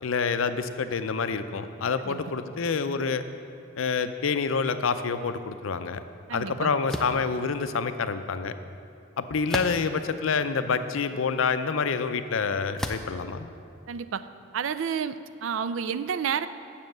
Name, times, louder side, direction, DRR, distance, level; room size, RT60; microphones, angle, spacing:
voice 1, 0.0-3.2 3.8-6.0 6.3-8.5 9.2-13.5, left 5 dB, 90° left, 10 dB, 0.5 m, -27 dB
voice 2, 6.3-6.7 13.9-14.2 14.5-16.5, right 7 dB, 85° right, 13 dB, 0.4 m, -30 dB
sound 1, 6.9-7.2 9.5-10.0 10.7-10.8 12.8-13.2, equal, 5° left, 0.4 m, -33 dB
7.3 x 6.9 x 7.7 m, 2.5 s
head